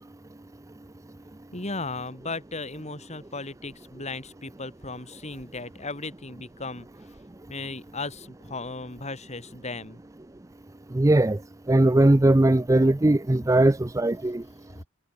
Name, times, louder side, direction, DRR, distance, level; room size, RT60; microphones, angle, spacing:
voice 1, 1.5-6.9 7.5-10.0 14.8-14.9, left 3 dB, 30° left, 5.7 m, -36 dB
voice 2, 10.9-11.4 11.7-14.4, right 1 dB, 15° right, 0.5 m, -19 dB
head